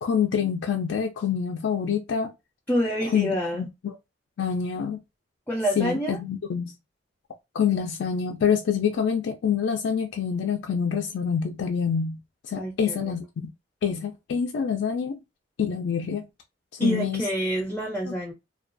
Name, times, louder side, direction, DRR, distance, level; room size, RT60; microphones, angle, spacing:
voice 1, 0.0-2.3 3.1-4.0 4.4-5.0 5.8-6.7 7.5-12.2 12.4-13.3 13.8-15.2 15.6-16.2 16.7-17.2 18.1-18.2, left 7 dB, 75° left, 0.3 m, -26 dB
voice 2, 2.7-3.6 5.5-6.2 12.6-13.1 16.8-18.3, equal, 10° left, 0.4 m, -27 dB
2.3 x 2.2 x 2.5 m
head